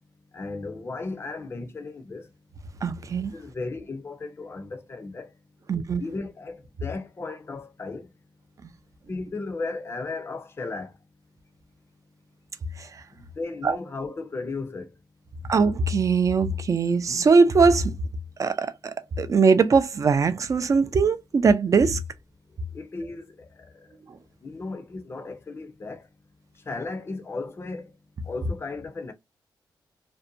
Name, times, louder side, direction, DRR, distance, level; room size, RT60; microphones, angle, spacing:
voice 1, 0.3-2.3 3.3-5.3 6.0-8.1 9.1-11.0 13.1-14.9 22.7-23.7 24.4-26.1 26.7-27.9 28.2-29.1, left 3 dB, 30° left, 0.5 m, -35 dB
voice 2, 2.8-3.3 5.7-6.0 12.8-12.9 13.6-13.8 15.5-17.9 18.4-18.7 19.2-22.0, right 4 dB, 40° right, 0.4 m, -20 dB
2.6 x 2.1 x 2.5 m
cardioid pair, 85°, 8 cm